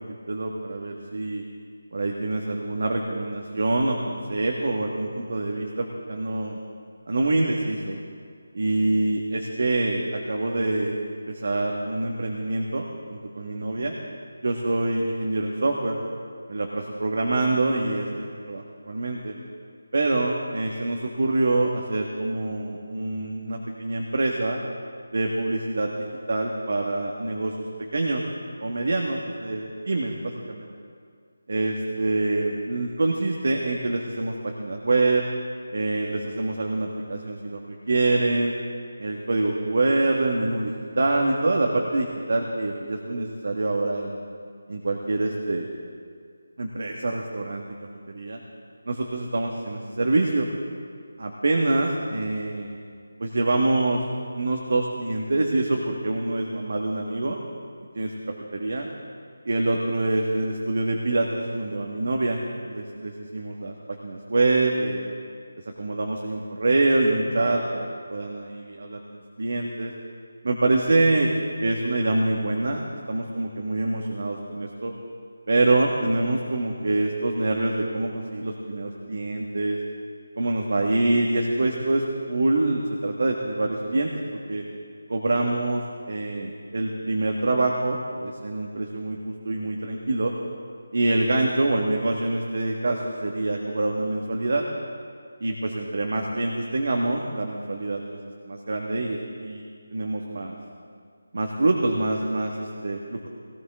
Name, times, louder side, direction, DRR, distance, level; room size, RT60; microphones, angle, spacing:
voice 1, 0.0-1.4 1.9-6.6 7.1-8.0 8.5-11.0 11.3-14.0 14.4-16.0 16.5-19.3 19.9-24.6 25.1-25.9 26.3-27.6 27.9-28.2 28.6-30.7 31.5-35.2 35.7-37.6 37.9-38.5 39.0-44.2 44.7-45.7 46.6-47.6 48.1-48.4 48.9-50.5 51.2-52.8 53.2-54.0 54.3-57.4 57.9-58.1 58.5-58.9 59.5-62.4 62.6-63.7 64.0-65.1 65.8-69.9 70.4-74.9 75.5-79.8 80.4-84.1 84.5-84.6 85.1-90.3 90.9-94.6 95.4-98.0 98.5-99.6 99.9-100.6 101.3-103.3, right 2 dB, 55° right, 1 dB, 1.8 m, -25 dB
18.5 x 18.5 x 3.8 m, 2.2 s
figure-of-eight pair, 160°, 0 cm